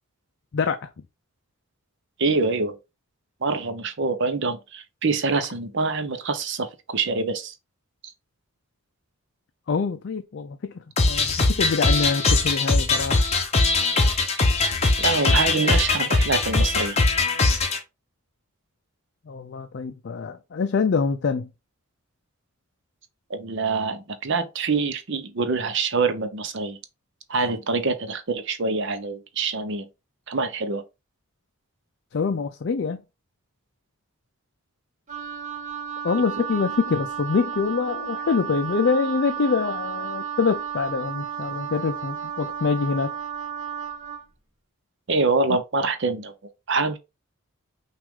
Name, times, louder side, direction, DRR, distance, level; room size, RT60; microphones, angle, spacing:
voice 1, 0.5-0.9 9.7-13.2 19.3-21.5 32.1-33.0 36.0-43.2, left 5 dB, 55° left, 0.4 m, -25 dB
voice 2, 2.2-2.8 3.4-7.5 15.0-17.0 23.3-26.8 27.3-29.9 30.3-30.8 45.1-46.3 46.7-47.0, right 4 dB, 55° right, 0.7 m, -25 dB
sound 1, 11.0-17.8, left 3 dB, 30° left, 0.8 m, -21 dB
Wind instrument woodwind instrument, 35.1-44.2, right 7 dB, 35° right, 1.0 m, -33 dB
6.0 x 2.5 x 3.6 m
head